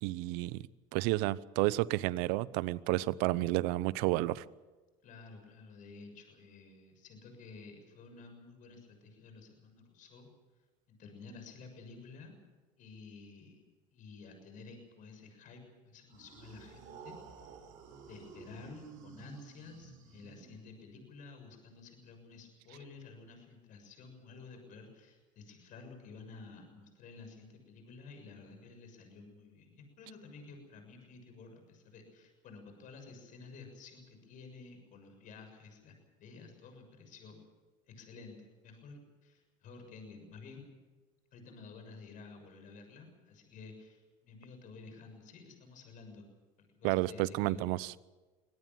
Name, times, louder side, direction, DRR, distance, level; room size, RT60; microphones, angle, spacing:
voice 1, 0.0-0.7 0.9-4.4 46.8-47.9, right 18 dB, 70° right, 20 dB, 0.8 m, -31 dB
voice 2, 5.0-10.3 10.9-12.4 12.8-13.6 13.9-17.1 18.1-37.4 37.9-40.7 41.3-46.2 46.6-47.7, left 4 dB, 50° left, 5 dB, 6.8 m, -52 dB
sound 1, 16.1-20.9, right 5 dB, 55° right, 6.0 m, -52 dB
24.0 x 18.0 x 7.7 m, 1.2 s
supercardioid pair, 100°, 17 cm